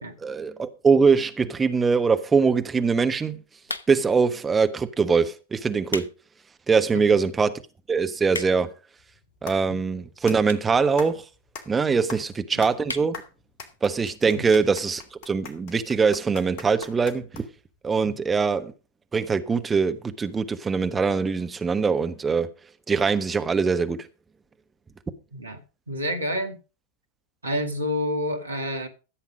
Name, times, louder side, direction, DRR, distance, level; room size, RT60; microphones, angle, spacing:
voice 1, 0.2-3.4 3.9-6.1 6.7-7.6 7.9-8.7 9.4-11.3 11.7-13.2 13.8-17.4 17.8-18.7 19.1-22.5 22.9-24.1, right 5 dB, 15° right, 1.2 m, -22 dB
sound 1, 3.6-4.2 4.9-5.1 5.6-6.2 6.6-6.7 7.3-7.4 7.6-7.7 7.9-8.8 9.6-9.7 10.4-10.8 11.1-11.2 11.4-11.5 11.7-11.8 12.1-12.3 12.8-13.1 13.5-13.6 13.8-13.9, left 3 dB, 75° left, 0.9 m, -34 dB
sound 2, 9.0-17.8, left 5 dB, 45° left, 2.7 m, -43 dB
voice 2, 25.9-26.6 27.4-28.9, left 1 dB, 75° right, 2.4 m, -28 dB
15.0 x 8.1 x 5.0 m
figure-of-eight pair, 90°, 0 cm